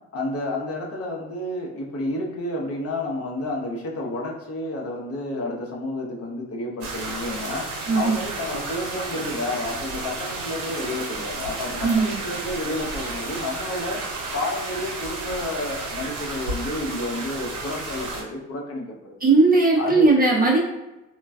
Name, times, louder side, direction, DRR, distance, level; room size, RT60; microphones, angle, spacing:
voice 1, 0.1-14.0 14.3-19.2 19.8-20.1, left 2 dB, 35° left, -2 dB, 0.7 m, -30 dB
sound 1, 6.8-18.2, right 3 dB, 90° right, 0.7 m, -32 dB
voice 2, 11.8-12.1 19.2-20.6, right 3 dB, 20° right, -2 dB, 0.7 m, -18 dB
3.0 x 2.3 x 2.3 m, 0.99 s
hypercardioid pair, 60°, 41 cm